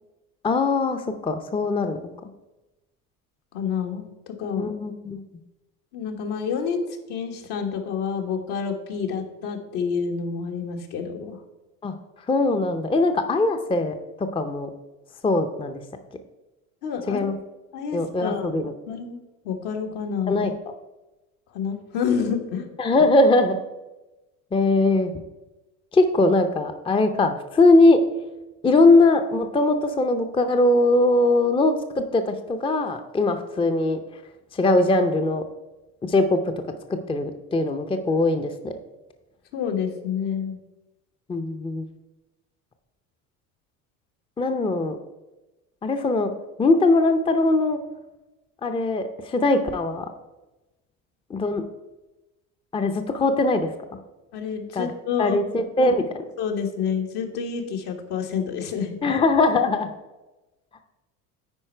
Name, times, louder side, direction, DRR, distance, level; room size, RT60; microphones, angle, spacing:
voice 1, 0.4-2.0 4.6-5.2 11.8-11.9 12.3-14.7 15.2-15.8 17.1-17.4 17.9-18.7 20.3-20.5 22.8-23.6 24.5-25.1 25.9-28.0 28.6-34.0 34.5-35.4 36.0-36.4 37.1-38.7 41.3-41.8 44.4-45.0 45.8-46.3 46.6-47.8 48.6-50.1 51.3-51.6 52.7-53.7 54.7-54.9 55.2-56.2 59.0-59.9, left 2 dB, 15° left, 7 dB, 0.6 m, -21 dB
voice 2, 3.5-4.7 5.9-6.8 7.1-11.4 16.8-17.3 17.7-18.5 18.9-19.2 19.4-20.5 21.5-22.7 39.5-40.6 54.3-55.4 55.8-55.9 56.4-59.2, left 6 dB, 65° left, 3 dB, 1.4 m, -28 dB
9.7 x 4.3 x 4.4 m, 1.0 s
hypercardioid pair, 85°, 42 cm